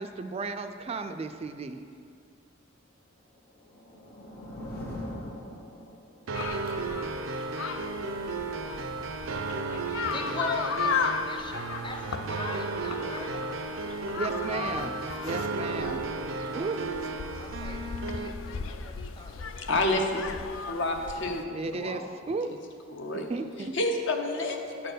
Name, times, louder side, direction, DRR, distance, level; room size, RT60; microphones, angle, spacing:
voice 1, 0.0-1.9 14.2-15.0 15.2-16.0 16.5-16.8 21.5-22.5 23.1-23.7, right 4 dB, 30° right, 8 dB, 0.3 m, -34 dB
sound 1, 3.4-6.3, left 1 dB, 50° left, 1.5 m, -41 dB
sound 2, 6.3-21.4, left 5 dB, 90° left, 0.4 m, -36 dB
sound 3, 6.3-18.3, right 3 dB, 85° right, 0.5 m, -34 dB
voice 2, 10.1-13.3 16.5-17.0 17.4-19.7, left 3 dB, 25° left, 4 dB, 0.7 m, -40 dB
voice 3, 19.7-20.2 20.7-22.1 22.4-22.6 22.9-23.3 23.7-24.9, left 2 dB, 65° left, 3 dB, 0.9 m, -29 dB
9.4 x 4.5 x 6.5 m, 2.4 s
head